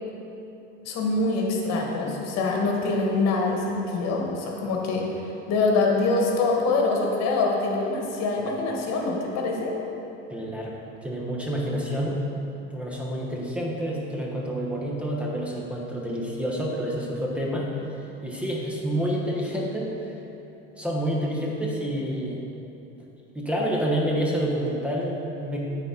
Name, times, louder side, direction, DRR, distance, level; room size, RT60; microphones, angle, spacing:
voice 1, 0.8-9.7, left 3 dB, 60° left, 0 dB, 1.4 m, -25 dB
voice 2, 10.3-10.7 11.0-12.2 12.7-17.7 18.2-20.1 20.8-22.4 23.3-25.6, equal, 5° right, -3 dB, 1.2 m, -28 dB
8.9 x 4.2 x 4.3 m, 2.8 s
supercardioid pair, 100°, 29 cm